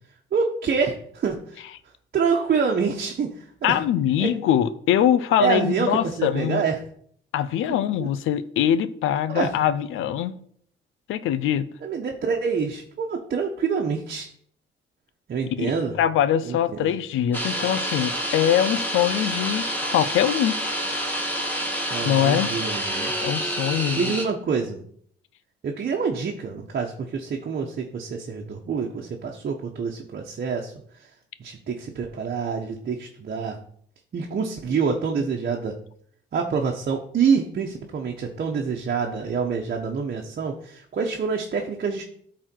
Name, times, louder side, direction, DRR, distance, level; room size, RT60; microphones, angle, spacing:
voice 1, 0.3-1.6 2.1-3.8 4.2-4.3 5.4-6.8 8.0-8.1 9.3-9.5 11.8-14.3 15.3-16.0 16.4-16.9 21.9-23.1 24.0-24.8 25.6-31.1 31.4-33.6 34.1-35.7 36.3-42.0, right 5 dB, 50° right, 1.3 m, -26 dB
voice 2, 3.6-6.6 7.3-10.4 11.1-11.7 15.6-15.7 16.0-20.6 22.0-22.5 23.2-24.1, left 10 dB, 85° left, 0.7 m, -23 dB
sound 1, 17.3-24.2, equal, 10° left, 2.4 m, -28 dB
12.5 x 4.3 x 4.6 m
cardioid pair, 90°, 20 cm